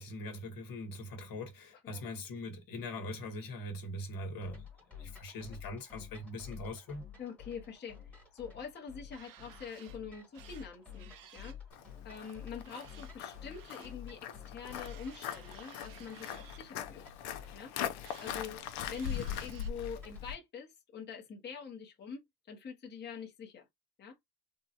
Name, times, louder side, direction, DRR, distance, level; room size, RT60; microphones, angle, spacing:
voice 1, 0.0-4.7 5.0-7.0, left 1 dB, 60° left, 1.1 m, -42 dB
sound 1, 4.4-20.3, left 8 dB, 5° left, 1.1 m, -51 dB
voice 2, 7.2-11.6 12.0-17.0 17.5-17.7 18.2-18.6 18.9-23.7 24.0-24.2, left 6 dB, 25° left, 0.7 m, -45 dB
sound 2, 8.9-10.0 10.3-11.6 12.1-14.0 14.6-16.6 17.7-18.5 18.8-19.7, right 10 dB, 55° right, 0.6 m, -56 dB
Walk footsteps, 11.7-20.4, left 9 dB, 85° left, 0.7 m, -41 dB
3.6 x 2.0 x 2.7 m
cardioid pair, 155°, 39 cm